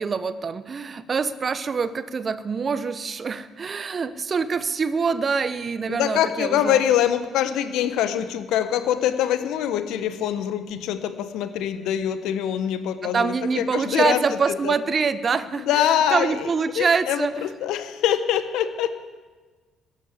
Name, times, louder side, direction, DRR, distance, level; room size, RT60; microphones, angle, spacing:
voice 1, 0.0-6.8 13.0-17.4, right 5 dB, 40° right, 14 dB, 1.0 m, -25 dB
voice 2, 5.9-14.2 14.5-14.7 15.6-16.5 16.7-18.9, left 10 dB, 70° left, 10 dB, 1.2 m, -24 dB
14.0 x 9.3 x 9.8 m, 1.3 s
hypercardioid pair, 55°, 0 cm